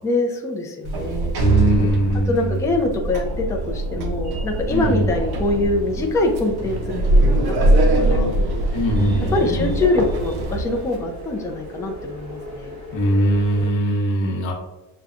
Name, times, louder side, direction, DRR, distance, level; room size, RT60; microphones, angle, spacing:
voice 1, 0.0-1.3 2.3-7.7 8.0-8.4 9.3-12.7, left 2 dB, 5° left, 0 dB, 0.5 m, -24 dB
Sliding door, 0.8-11.0, right 2 dB, 55° right, 0.8 m, -22 dB
voice 2, 1.4-2.8 4.7-5.1 8.7-9.7 12.9-14.5, equal, 75° left, 0 dB, 1.2 m, -21 dB
sound 1, 4.1-13.7, equal, 35° right, 1.2 m, -37 dB
6.6 x 2.3 x 2.4 m, 1.1 s
cardioid pair, 110°, 46 cm